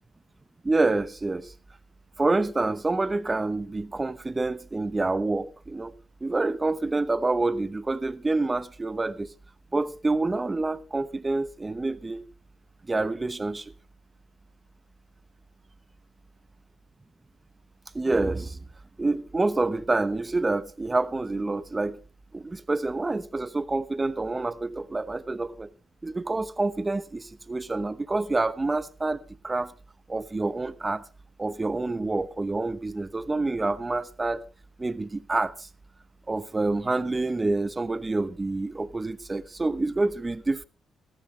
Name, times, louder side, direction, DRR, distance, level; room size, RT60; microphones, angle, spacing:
voice 1, 0.6-1.5 2.2-5.9 6.2-9.3 9.7-12.2 12.8-13.6 17.9-18.6 19.0-22.0 22.3-25.7 26.0-29.7 30.1-31.0 31.4-34.4 34.8-35.7 36.3-40.6, right 2 dB, 20° right, 1.0 m, -27 dB
18.0 x 14.0 x 3.3 m
cardioid pair, 90°, 0 cm